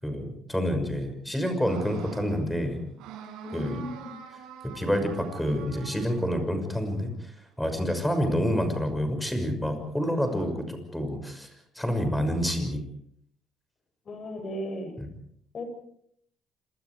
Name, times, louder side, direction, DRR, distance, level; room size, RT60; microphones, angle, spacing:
voice 1, 0.0-2.8 3.5-3.8 4.7-11.5 11.8-12.8 15.0-15.1, equal, 5° left, 7 dB, 6.1 m, -28 dB
sound 1, 1.7-7.2 9.7-10.5, right 8 dB, 90° right, 6.3 m, -46 dB
voice 2, 3.4-4.1 14.1-14.9 15.5-15.6, left 1 dB, 40° left, 7 dB, 7.4 m, -36 dB
27.5 x 27.5 x 4.9 m, 0.68 s
cardioid pair, 125°, 0 cm